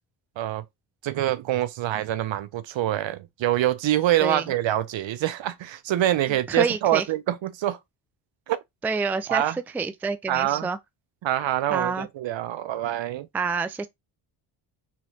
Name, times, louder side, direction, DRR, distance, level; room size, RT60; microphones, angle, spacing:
voice 1, 0.4-0.7 1.0-7.8 8.5-8.6 9.3-9.6 10.3-10.7 11.2-13.3, right 13 dB, 65° right, 0.7 m, -25 dB
voice 2, 6.5-7.0 8.8-9.4 9.7-10.8 11.7-12.1 13.3-13.9, right 4 dB, 5° right, 0.3 m, -27 dB
3.3 x 2.9 x 2.7 m
supercardioid pair, 60°, 50 cm